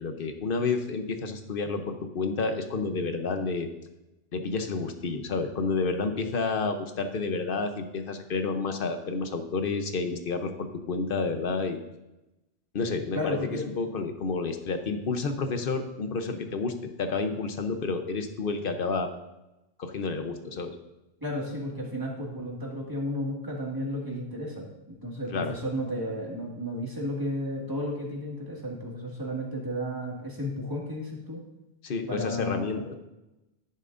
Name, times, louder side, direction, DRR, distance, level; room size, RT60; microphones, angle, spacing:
voice 1, 0.0-3.7 4.3-11.8 12.7-13.4 13.8-19.1 19.8-20.7 25.3-25.5 31.8-32.9, left 4 dB, 50° left, 7 dB, 1.0 m, -30 dB
voice 2, 13.1-13.6 21.2-31.4 32.1-32.8, equal, 15° right, -3 dB, 2.0 m, -33 dB
11.0 x 10.5 x 2.6 m, 0.98 s
omnidirectional pair, 1.2 m